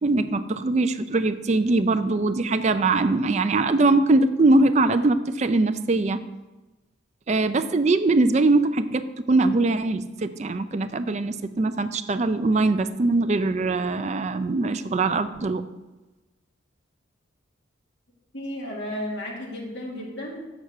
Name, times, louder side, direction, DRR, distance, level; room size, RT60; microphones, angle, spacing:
voice 1, 0.0-6.2 7.3-15.6, right 2 dB, 35° right, 11 dB, 0.4 m, -22 dB
voice 2, 18.3-20.5, left 1 dB, 65° left, -3 dB, 1.9 m, -33 dB
6.6 x 6.0 x 6.5 m, 1.1 s
head